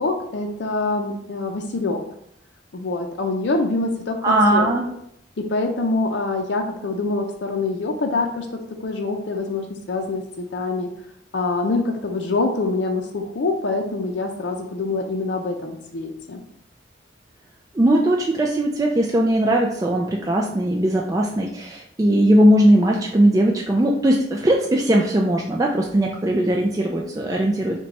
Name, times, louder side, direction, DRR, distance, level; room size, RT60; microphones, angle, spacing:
voice 1, 0.0-2.0 2.7-4.7 5.4-10.9 11.3-16.4, left 3 dB, 70° left, 2 dB, 0.5 m, -25 dB
voice 2, 4.2-4.9 17.7-27.8, right 1 dB, 20° right, -1 dB, 0.3 m, -19 dB
5.5 x 2.2 x 4.0 m, 0.73 s
head